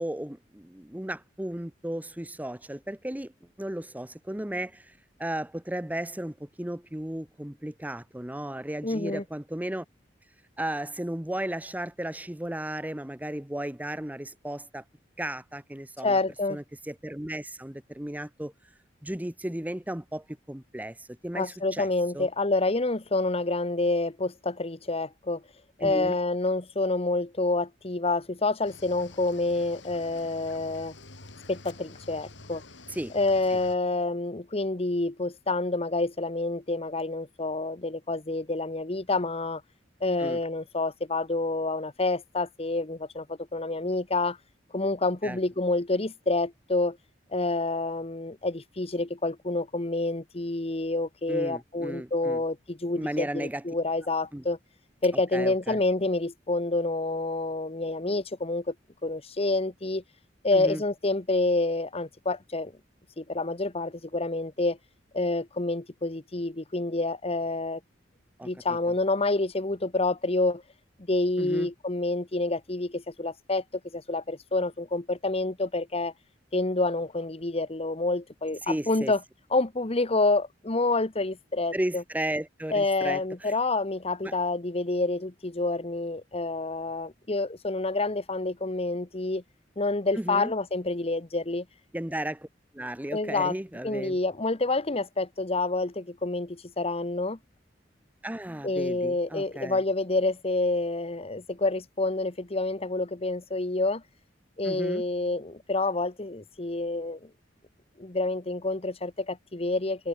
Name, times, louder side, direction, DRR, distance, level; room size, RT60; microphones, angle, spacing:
voice 1, 0.0-3.3 3.6-9.8 10.6-14.8 15.2-16.2 16.5-18.5 19.0-21.9 22.1-22.3 25.8-26.1 32.9-33.2 33.5-33.6 40.2-40.4 45.2-45.4 51.3-52.4 53.0-53.6 54.3-54.4 55.3-55.8 60.5-60.8 68.4-68.8 71.4-71.7 78.6-79.1 81.7-83.5 84.2-84.3 90.2-90.5 91.9-92.5 92.7-94.2 98.2-99.8 104.6-105.0, right 1 dB, 10° right, 0.9 m, -34 dB
voice 2, 8.8-9.2 16.0-16.6 21.3-25.4 25.8-30.9 31.5-32.6 33.1-39.6 40.0-44.4 44.7-47.0 47.3-54.6 55.0-58.7 59.0-60.0 60.4-62.7 63.2-64.8 65.1-67.8 68.4-70.6 71.1-76.1 76.5-79.2 79.5-82.0 82.7-89.4 89.8-91.6 93.1-93.5 93.8-97.4 98.6-104.0 104.6-107.3 108.0-110.1, left 2 dB, 35° left, 1.3 m, -28 dB
Cricket / Waves surf, 28.6-33.8, left 2 dB, 85° left, 5.9 m, -48 dB
head